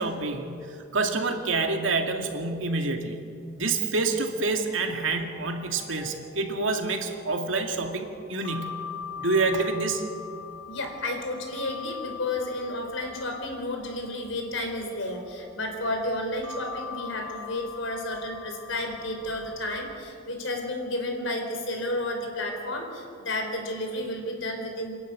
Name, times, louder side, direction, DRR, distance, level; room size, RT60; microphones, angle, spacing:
voice 1, 0.0-3.2 3.6-8.9 9.2-10.1, right 3 dB, 85° right, 3 dB, 2.3 m, -27 dB
sound 1, 4.2-20.0, left 6 dB, 30° left, 4.8 m, -43 dB
voice 2, 10.7-24.9, left 1 dB, 90° left, 3 dB, 4.4 m, -32 dB
27.5 x 11.5 x 9.5 m, 2.5 s
head